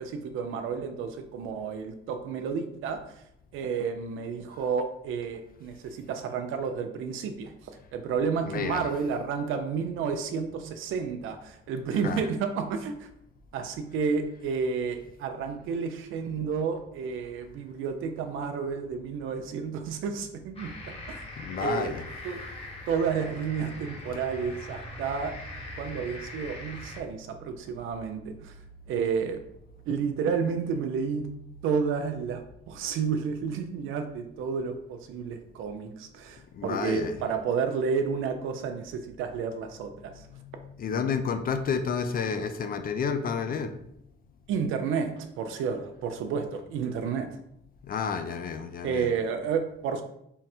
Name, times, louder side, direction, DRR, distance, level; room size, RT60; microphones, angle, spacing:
voice 1, 0.0-3.0 3.5-7.5 7.9-13.1 13.5-21.2 21.6-21.9 22.2-22.4 22.9-25.3 25.8-28.5 28.9-29.4 29.9-31.3 31.6-32.4 32.7-40.2 44.5-47.4 48.8-50.0, right 6 dB, 85° right, 6 dB, 0.5 m, -31 dB
voice 2, 8.5-8.9 12.0-12.2 21.4-22.1 36.5-37.2 40.3-43.7 47.8-49.1, left 6 dB, 50° left, 8 dB, 0.4 m, -30 dB
sound 1, 20.6-27.0, left 1 dB, 30° left, 1.0 m, -41 dB
3.7 x 2.0 x 4.3 m, 0.76 s
cardioid pair, 90°, 20 cm